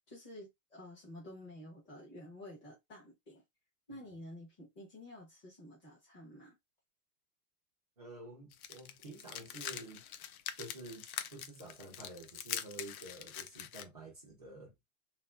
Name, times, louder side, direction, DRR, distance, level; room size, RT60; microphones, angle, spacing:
voice 1, 0.1-3.4 3.9-6.5, left 1 dB, 10° left, 0.6 m, -51 dB
voice 2, 8.0-10.0 10.5-11.0 11.3-14.7, right 2 dB, 30° right, 0.4 m, -49 dB
sound 1, 8.5-13.8, left 10 dB, 65° left, 0.6 m, -43 dB
2.7 x 2.5 x 3.2 m
supercardioid pair, 180°, 47 cm